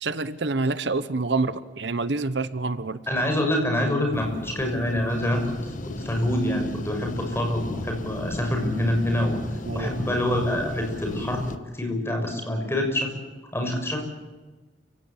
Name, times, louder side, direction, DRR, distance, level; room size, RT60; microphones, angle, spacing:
voice 1, 0.0-3.0 9.6-9.9, right 3 dB, 65° right, 14 dB, 1.0 m, -27 dB
voice 2, 3.1-9.4 9.7-11.4 11.7-13.1 13.5-14.0, left 1 dB, 15° left, 3 dB, 6.2 m, -26 dB
sound 1, 4.1-11.6, left 1 dB, 45° left, 1.4 m, -36 dB
29.5 x 17.0 x 8.9 m, 1.2 s
head